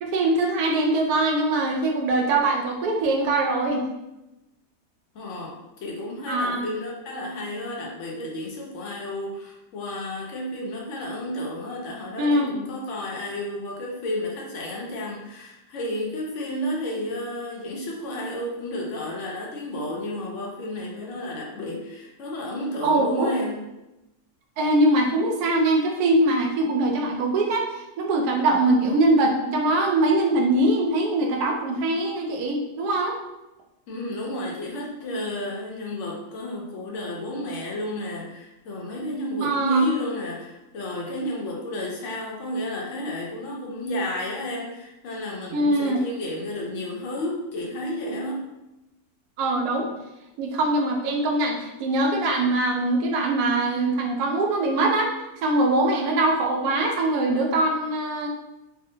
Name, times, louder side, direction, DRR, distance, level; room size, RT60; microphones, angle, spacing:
voice 1, 0.0-3.8 6.3-6.6 12.2-12.5 22.8-23.4 24.6-33.2 39.4-39.8 45.5-46.0 49.4-49.9 50.4-55.1 55.4-58.3, right 2 dB, 80° right, 2 dB, 1.1 m, -22 dB
voice 2, 5.1-23.6 33.9-48.5, left 1 dB, 60° left, -2 dB, 0.9 m, -32 dB
3.4 x 2.1 x 2.6 m, 0.96 s
omnidirectional pair, 1.6 m